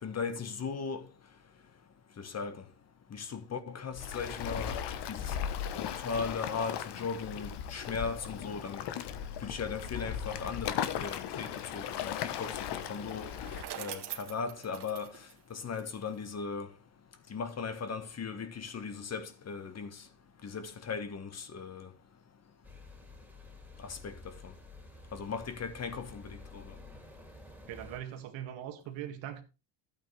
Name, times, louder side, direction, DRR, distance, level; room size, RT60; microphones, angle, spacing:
voice 1, 0.0-1.0 2.2-2.6 3.1-4.8 5.1-5.4 5.8-8.8 9.4-13.3 13.8-15.1 15.5-16.7 17.3-20.0 20.4-21.9 23.8-24.5 25.1-26.6, left 5 dB, 35° left, 1.4 m, -38 dB
Waves surf, 3.9-13.6, left 9 dB, 65° left, 1.2 m, -37 dB
Bicycle, 13.0-16.2, right 11 dB, 65° right, 1.8 m, -44 dB
sound 1, 22.6-28.0, left 2 dB, 5° right, 2.6 m, -51 dB
voice 2, 27.7-29.4, right 11 dB, 85° right, 2.0 m, -41 dB
12.0 x 8.9 x 3.2 m
cardioid pair, 110°, 44 cm